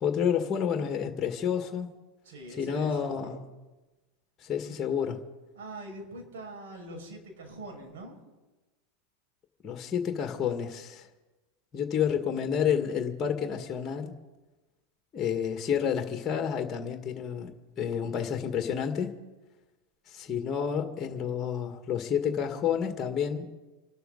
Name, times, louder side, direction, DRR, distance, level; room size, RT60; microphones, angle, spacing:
voice 1, 0.0-1.9 2.6-3.4 4.4-5.2 9.6-11.1 11.7-14.2 15.1-19.2 20.1-23.5, left 8 dB, 30° left, 2.0 m, -30 dB
voice 2, 2.2-3.4 5.5-8.2, right 1 dB, 65° right, 5.8 m, -43 dB
27.5 x 12.5 x 4.0 m
hypercardioid pair, 90°, 0 cm